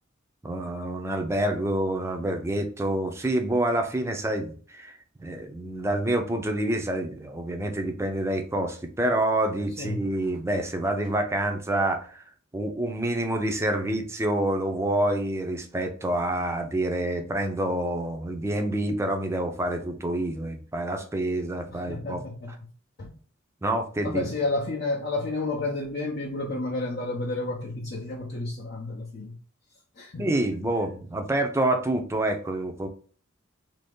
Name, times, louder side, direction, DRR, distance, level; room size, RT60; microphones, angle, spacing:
voice 1, 0.4-12.2 12.5-22.2 23.6-24.3 30.2-32.9, right 1 dB, 15° right, 0.4 m, -27 dB
voice 2, 21.7-22.5 23.0-23.1 24.0-29.4 30.0-30.4, left 2 dB, 50° left, 0.6 m, -31 dB
2.9 x 2.7 x 3.5 m
head